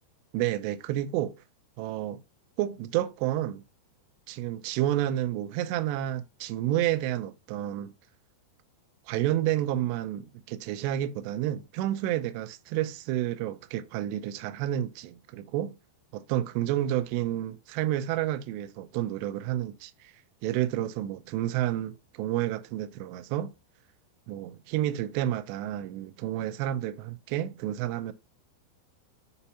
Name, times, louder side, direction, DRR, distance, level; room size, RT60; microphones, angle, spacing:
voice 1, 0.3-1.4 1.8-2.2 2.6-3.6 4.3-7.9 9.1-15.7 16.1-19.9 20.4-23.5 24.3-28.1, right 13 dB, 85° right, 2.5 m, -30 dB
6.9 x 2.8 x 5.4 m
omnidirectional pair, 5.3 m